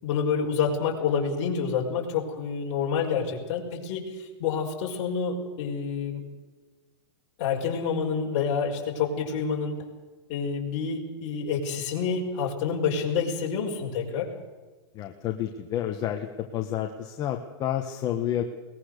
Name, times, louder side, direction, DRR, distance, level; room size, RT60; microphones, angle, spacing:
voice 1, 0.0-6.2 7.4-9.8 10.3-14.3, left 6 dB, 40° left, -1 dB, 5.3 m, -28 dB
voice 2, 14.9-16.3 16.5-18.4, left 11 dB, 25° left, 4 dB, 1.3 m, -29 dB
21.5 x 20.5 x 6.8 m, 1.3 s
supercardioid pair, 155°, 15 cm